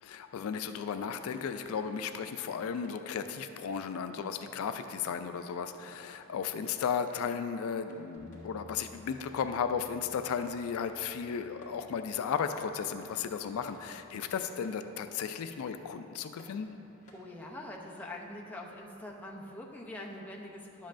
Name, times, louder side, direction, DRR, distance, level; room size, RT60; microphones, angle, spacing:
voice 1, 0.0-16.7, left 7 dB, 75° left, 8 dB, 0.3 m, -35 dB
sound 1, 1.5-17.5, equal, 35° left, 1.5 m, -60 dB
Bass guitar, 8.2-14.4, left 1 dB, 10° right, 1.6 m, -58 dB
voice 2, 17.1-20.9, left 1 dB, 5° left, -2 dB, 0.6 m, -44 dB
11.0 x 7.4 x 2.5 m, 2.8 s
head